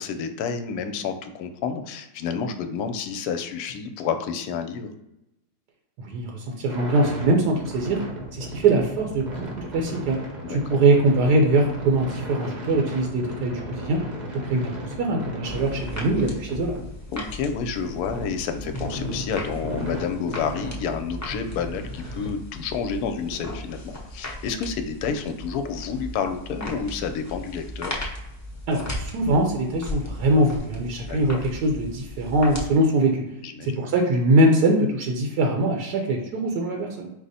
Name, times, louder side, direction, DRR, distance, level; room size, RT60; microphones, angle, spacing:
voice 1, 0.0-4.9 10.4-10.8 17.1-27.9 31.1-31.4 33.4-33.8, left 6 dB, 75° left, 7 dB, 1.0 m, -30 dB
voice 2, 6.0-8.0 8.3-9.5 9.7-10.2 10.5-14.0 14.3-16.8 28.7-33.2 33.6-37.1, right 2 dB, 80° right, 1 dB, 1.2 m, -22 dB
sound 1, 6.7-22.3, equal, 40° right, 0.7 m, -35 dB
sound 2, 15.4-32.7, left 1 dB, 25° left, 0.3 m, -37 dB
5.0 x 2.1 x 4.0 m, 0.89 s
omnidirectional pair, 1.7 m